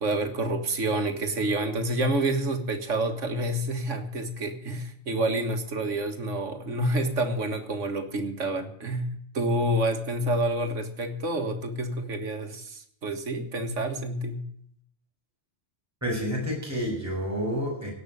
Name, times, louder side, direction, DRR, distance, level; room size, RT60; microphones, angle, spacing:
voice 1, 0.0-9.1 9.3-14.4, right 1 dB, 80° right, 7 dB, 2.0 m, -28 dB
voice 2, 16.0-17.9, equal, 15° right, -4 dB, 7.1 m, -29 dB
17.5 x 6.1 x 9.9 m, 0.67 s
omnidirectional pair, 1.3 m